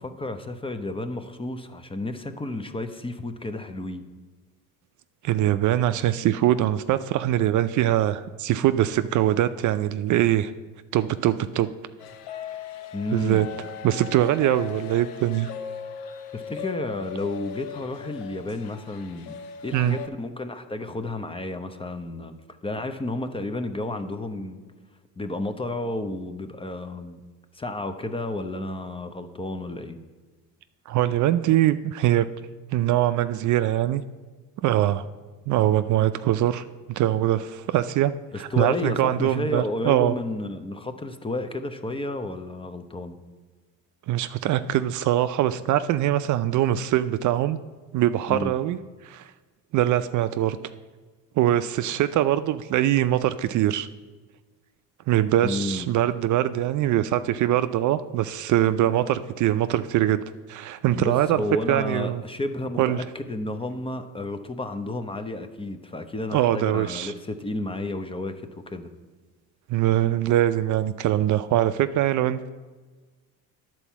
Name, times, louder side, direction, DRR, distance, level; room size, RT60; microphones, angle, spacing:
voice 1, 0.0-4.1 12.9-13.5 16.3-19.4 19.6-22.3 22.6-24.6 25.2-27.2 27.5-30.0 38.3-43.2 48.3-48.6 55.4-55.9 60.9-68.9, left 2 dB, 15° left, 9 dB, 0.6 m, -32 dB
voice 2, 5.2-10.5 10.9-11.7 13.1-13.5 13.8-15.5 19.7-20.0 30.9-32.3 32.7-34.0 34.6-35.1 35.5-40.1 44.1-47.6 47.9-48.8 49.0-49.3 49.7-50.6 51.4-53.9 55.1-60.2 60.5-61.4 61.7-62.2 62.8-63.0 66.3-67.1 69.7-72.5, right 13 dB, 50° right, 12 dB, 0.4 m, -23 dB
sound 1, 12.0-20.1, left 7 dB, 70° left, 0.8 m, -38 dB
9.8 x 4.5 x 7.1 m, 1.3 s
supercardioid pair, 95°, 39 cm